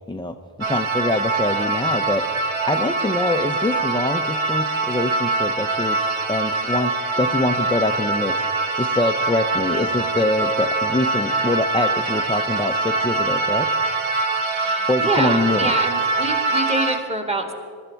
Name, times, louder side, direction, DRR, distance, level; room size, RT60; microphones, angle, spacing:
voice 1, 0.1-13.7 14.9-15.7, left 2 dB, 10° left, 5 dB, 0.5 m, -24 dB
sound 1, 0.6-17.0, right 3 dB, 75° right, 1.3 m, -23 dB
voice 2, 14.5-17.5, right 2 dB, 15° right, 4 dB, 1.6 m, -26 dB
22.5 x 13.0 x 4.5 m, 2.3 s
wide cardioid pair, 110°, 49 cm